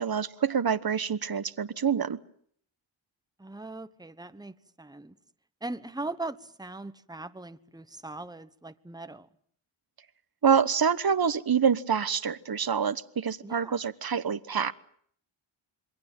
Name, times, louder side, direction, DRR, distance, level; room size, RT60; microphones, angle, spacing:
voice 1, 0.0-2.2 10.4-14.7, right 7 dB, 45° right, 1.2 m, -26 dB
voice 2, 3.4-5.1 5.6-9.3 13.4-13.8, right 2 dB, 10° right, 1.2 m, -40 dB
27.5 x 22.0 x 7.5 m
wide cardioid pair, 75°, 49 cm